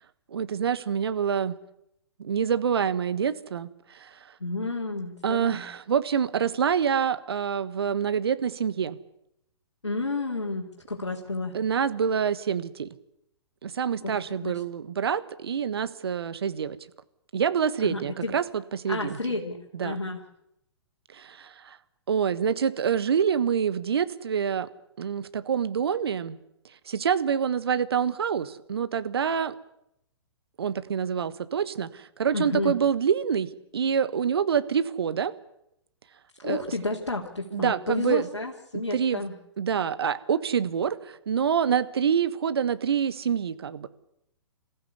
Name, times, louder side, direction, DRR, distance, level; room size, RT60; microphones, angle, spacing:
voice 1, 0.3-1.5 2.2-4.3 5.2-9.0 11.5-12.9 13.6-16.8 17.3-19.2 19.7-20.0 21.1-21.8 22.1-24.7 25.0-26.4 26.8-29.5 30.6-35.3 36.4-36.6 37.5-38.3 38.9-39.2 39.6-43.9, right 7 dB, 60° right, 14 dB, 1.4 m, -26 dB
voice 2, 4.4-5.6 9.8-11.6 14.0-14.5 17.8-18.3 18.9-20.2 32.3-32.8 36.4-39.4, left 2 dB, 80° left, -1 dB, 2.7 m, -31 dB
27.5 x 15.0 x 8.3 m, 0.80 s
figure-of-eight pair, 120°, 15 cm